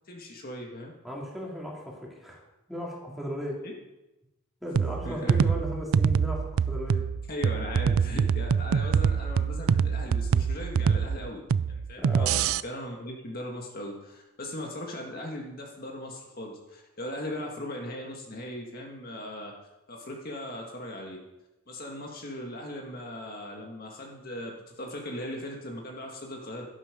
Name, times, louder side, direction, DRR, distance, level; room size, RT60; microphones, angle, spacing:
voice 1, 0.1-0.9 3.6-3.8 5.0-5.5 7.3-11.4 11.7-19.5 19.9-21.2 21.7-26.7, left 1 dB, 45° left, 0 dB, 1.9 m, -38 dB
voice 2, 1.0-2.4 2.7-3.7 4.6-7.1 12.0-12.4, equal, ahead, -3 dB, 2.8 m, -36 dB
sound 1, 4.8-12.6, right 6 dB, 80° right, 0.4 m, -25 dB
12.0 x 11.5 x 5.2 m, 0.99 s
head